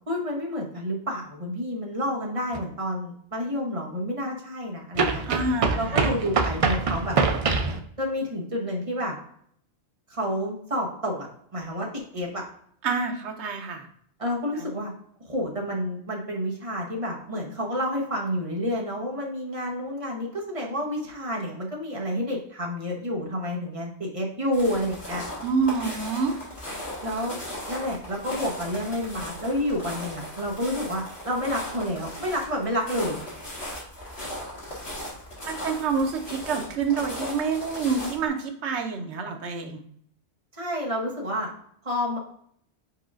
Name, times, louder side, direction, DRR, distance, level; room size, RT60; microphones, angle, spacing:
voice 1, 0.1-5.2 5.7-7.2 8.0-9.2 10.1-11.3 11.5-12.4 14.2-14.9 15.2-25.2 27.0-27.4 27.7-33.2 40.6-41.5 41.8-42.2, equal, 30° right, -1 dB, 1.0 m, -29 dB
sound 1, 2.5-2.6 4.9-7.8, right 4 dB, 65° right, 0.3 m, -24 dB
voice 2, 5.3-6.1 12.8-13.9 14.6-14.7 25.4-26.3 35.5-39.8, right 4 dB, 90° right, 4 dB, 1.0 m, -27 dB
sound 2, 24.5-38.3, left 1 dB, 65° left, 2.1 m, -37 dB
4.7 x 4.7 x 2.4 m, 0.64 s
omnidirectional pair, 1.1 m